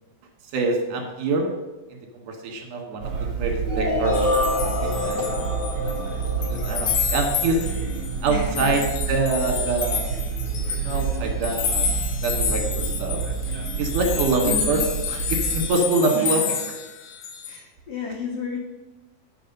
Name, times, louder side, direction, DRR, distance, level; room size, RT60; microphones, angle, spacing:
voice 1, 0.5-1.5 1.9-3.1 3.4-4.3 4.8-5.2 6.4-7.7 8.2-8.8 9.1-10.1 10.8-13.2 13.8-14.8 15.1-16.4, right 3 dB, 75° right, 2 dB, 3.0 m, -25 dB
sound 1, 3.0-15.7, right 6 dB, 55° right, 2.4 m, -29 dB
sound 2, 3.6-7.6, left 2 dB, 35° left, 3.7 m, -27 dB
sound 3, 4.1-6.0 6.2-17.6, left 7 dB, 85° left, 2.5 m, -29 dB
voice 2, 8.3-8.8 14.4-14.8 16.1-16.4 17.5-18.6, left 4 dB, 65° left, 0 dB, 1.7 m, -32 dB
10.5 x 5.9 x 5.3 m, 1.1 s
omnidirectional pair, 3.8 m